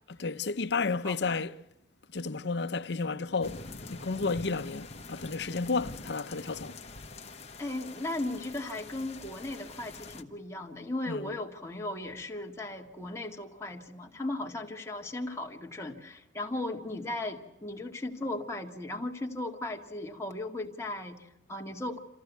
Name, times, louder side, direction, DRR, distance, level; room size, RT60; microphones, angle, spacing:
voice 1, 0.2-1.5 2.1-6.8 11.1-11.3, left 4 dB, 65° left, 0.7 m, -32 dB
voice 2, 1.0-1.4 7.6-22.0, left 2 dB, 15° left, 2.0 m, -37 dB
sound 1, 3.4-10.2, left 3 dB, 35° left, 1.2 m, -45 dB
27.0 x 15.0 x 8.2 m
head